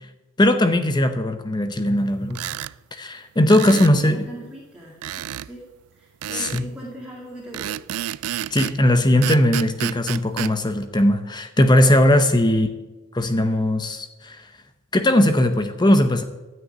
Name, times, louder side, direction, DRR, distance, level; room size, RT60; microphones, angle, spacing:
voice 1, 0.4-2.4 2.9-4.2 6.3-6.6 8.5-12.7 13.1-14.5 14.9-16.2, left 1 dB, 20° left, 8 dB, 0.7 m, -19 dB
sound 1, 2.3-2.7 3.5-4.0 5.0-5.5 6.2-6.7 7.5-8.8 9.2-10.5, right 11 dB, 90° right, 0.4 m, -30 dB
voice 2, 3.6-5.0 5.4-5.6 5.9-7.9 12.3-12.6 13.4-13.6, right 1 dB, 5° right, -5 dB, 2.1 m, -39 dB
12.5 x 6.5 x 9.3 m, 1.1 s
head